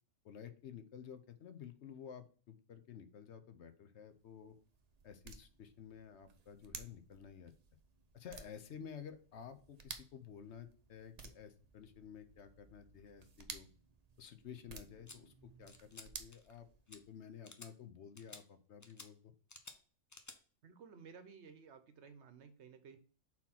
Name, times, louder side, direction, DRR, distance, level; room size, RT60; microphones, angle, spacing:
voice 1, 0.2-4.5 5.0-7.5 8.1-13.7 14.2-15.3 15.6-19.2, left 8 dB, 65° left, 10 dB, 0.9 m, -52 dB
sound 1, 4.0-17.2, right 5 dB, 40° right, 0.6 m, -55 dB
sound 2, 15.1-15.2 15.7-16.1 16.3-16.6 16.9-17.0 17.4-17.7 18.2-18.4 18.8-19.1 19.5-19.8 20.1-20.4, left 3 dB, 25° left, 0.3 m, -53 dB
voice 2, 20.6-23.0, right 6 dB, 60° right, 9 dB, 1.0 m, -56 dB
4.4 x 4.2 x 5.7 m, 0.40 s
omnidirectional pair, 1.4 m